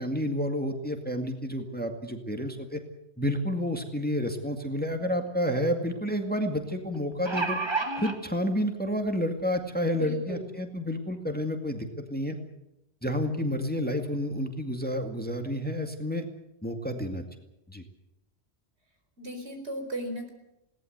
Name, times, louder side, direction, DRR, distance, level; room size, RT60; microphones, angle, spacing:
voice 1, 0.0-2.8 3.2-7.6 8.0-12.4 13.0-16.3 16.6-17.2 17.7-17.8, equal, 10° left, 5 dB, 2.0 m, -30 dB
sound 1, 4.8-4.9 5.3-5.4 6.9-8.2 9.1-9.2 9.6-9.7, right 3 dB, 25° right, 2.1 m, -29 dB
voice 2, 9.9-10.5 19.2-20.3, right 1 dB, 75° right, 5 dB, 4.8 m, -36 dB
21.0 x 18.5 x 8.0 m, 0.87 s
omnidirectional pair, 1.1 m